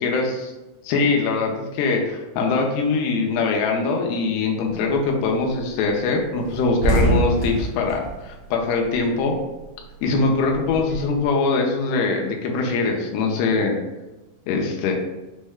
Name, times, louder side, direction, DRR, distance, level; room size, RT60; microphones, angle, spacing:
voice 1, 0.0-0.5 0.8-9.4 10.0-13.8 14.5-14.9, left 4 dB, 85° left, 1 dB, 2.6 m, -22 dB
sound 1, 4.7-5.0 5.4-5.6 5.8-6.0 6.3-9.3 9.6-11.2, right 2 dB, 90° right, 1.1 m, -25 dB
6.2 x 2.1 x 3.5 m, 1.0 s
omnidirectional pair, 4.7 m